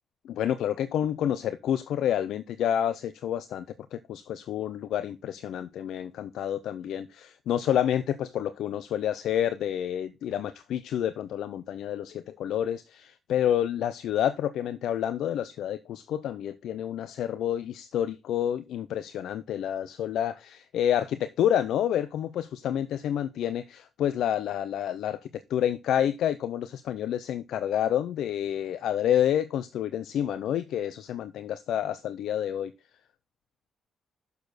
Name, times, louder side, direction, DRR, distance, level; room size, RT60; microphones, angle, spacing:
voice 1, 0.2-3.7 3.9-32.7, left 10 dB, 75° left, 0.5 m, -29 dB
6.9 x 6.7 x 4.0 m
supercardioid pair, 60°, 0 cm